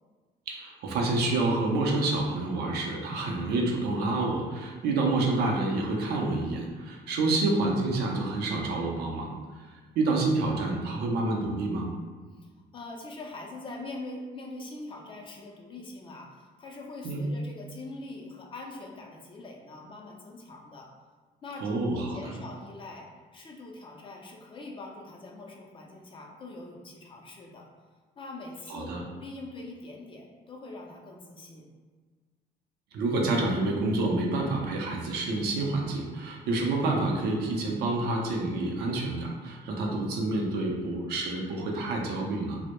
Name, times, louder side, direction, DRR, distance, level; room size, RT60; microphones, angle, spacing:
voice 1, 0.5-9.3 10.0-11.9 17.0-17.2 21.6-22.4 28.7-29.0 32.9-42.6, right 2 dB, 75° right, -1 dB, 0.5 m, -28 dB
voice 2, 12.4-20.9 21.4-23.1 23.3-27.7 28.2-31.6, left 2 dB, 30° left, 0 dB, 0.4 m, -43 dB
2.1 x 2.0 x 2.9 m, 1.5 s
cardioid pair, 110°, 17 cm